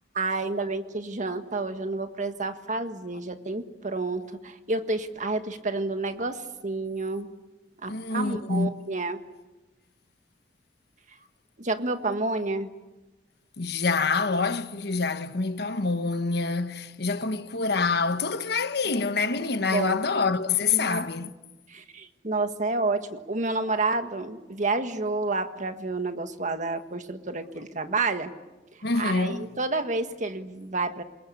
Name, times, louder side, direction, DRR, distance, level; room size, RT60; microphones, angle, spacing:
voice 1, 0.1-7.3 7.8-9.2 11.6-12.7 19.7-20.0 20.7-21.1 21.7-28.3 28.9-31.0, right 3 dB, 45° right, 1.6 m, -29 dB
voice 2, 7.9-8.7 13.6-21.3 28.8-29.5, left 4 dB, 65° left, 1.2 m, -26 dB
27.5 x 22.0 x 8.4 m
head